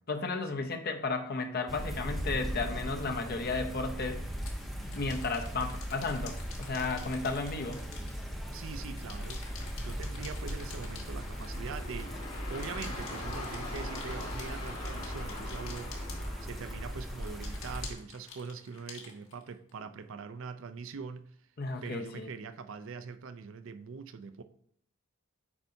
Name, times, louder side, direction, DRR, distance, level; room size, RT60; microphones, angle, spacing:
voice 1, 0.1-4.2 4.8-7.8 21.6-22.3, left 3 dB, 45° left, 0.6 m, -34 dB
sound 1, 1.7-17.9, equal, ahead, 0.6 m, -39 dB
sound 2, 2.6-17.8, left 2 dB, 80° left, 2.2 m, -46 dB
sound 3, 3.3-3.4 4.3-8.7 8.9-16.8 17.2-19.7, left 5 dB, 65° left, 1.5 m, -49 dB
voice 2, 8.5-9.6 9.8-12.1 12.5-16.0 16.4-21.3 21.8-24.4, right 5 dB, 60° right, 0.4 m, -43 dB
8.5 x 5.4 x 2.7 m
head